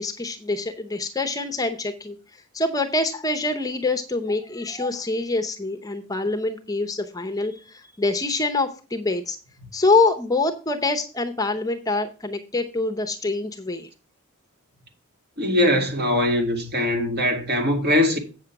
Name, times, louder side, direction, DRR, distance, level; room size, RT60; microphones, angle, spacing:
voice 1, 0.0-2.2 2.5-9.4 9.7-13.9, left 3 dB, 15° left, 0.7 m, -25 dB
voice 2, 15.4-18.2, left 1 dB, 50° right, 2.1 m, -21 dB
8.4 x 6.4 x 5.8 m
head